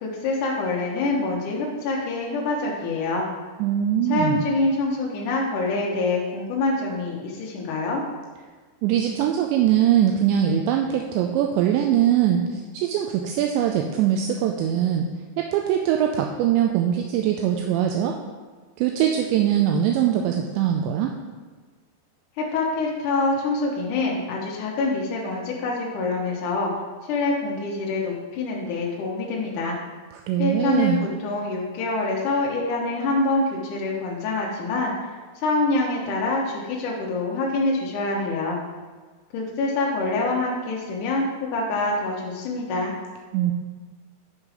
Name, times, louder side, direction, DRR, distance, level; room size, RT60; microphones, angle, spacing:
voice 1, 0.0-3.3 4.1-8.0 22.4-26.7 27.0-29.8 30.4-34.9 35.4-38.6 39.3-42.9, left 2 dB, 80° left, -3 dB, 1.8 m, -25 dB
voice 2, 3.6-4.4 8.8-15.1 15.4-18.2 18.8-21.1 30.3-31.0 43.3-43.5, right 10 dB, 85° right, 2 dB, 2.7 m, -22 dB
11.0 x 5.0 x 4.9 m, 1.4 s
omnidirectional pair, 5.3 m